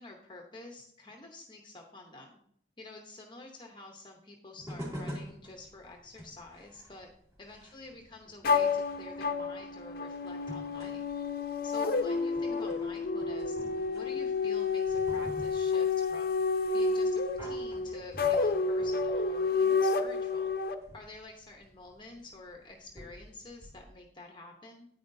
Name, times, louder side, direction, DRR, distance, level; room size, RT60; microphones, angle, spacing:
voice 1, 0.0-2.4 2.8-7.1 7.4-11.0 11.6-16.4 16.7-20.5 20.9-24.9, left 2 dB, 25° left, 2 dB, 0.9 m, -49 dB
sound 1, 4.6-23.8, equal, 20° right, 2.5 m, -49 dB
sound 2, 8.4-20.7, left 4 dB, 55° left, 0.7 m, -30 dB
9.6 x 9.3 x 2.7 m, 0.67 s
head